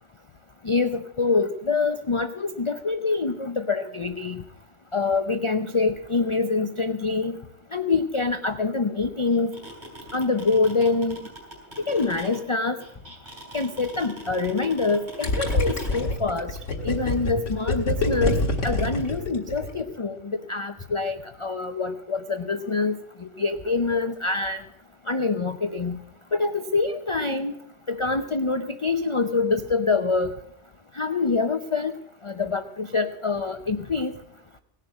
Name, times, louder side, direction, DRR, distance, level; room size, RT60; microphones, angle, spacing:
voice 1, 0.6-4.4 4.9-7.4 7.7-9.5 10.1-11.2 11.9-12.8 13.5-16.6 16.8-18.3 18.6-22.9 23.2-24.6 25.1-26.0 26.3-27.5 27.9-30.3 30.9-31.9 32.2-34.1, left 4 dB, 40° left, 9 dB, 0.4 m, -25 dB
sound 1, 9.3-16.0, right 1 dB, 35° right, 5.0 m, -40 dB
Gurgling, 15.2-19.9, left 2 dB, 65° left, 2.4 m, -26 dB
18.0 x 6.6 x 8.5 m, 0.74 s
omnidirectional pair, 1.3 m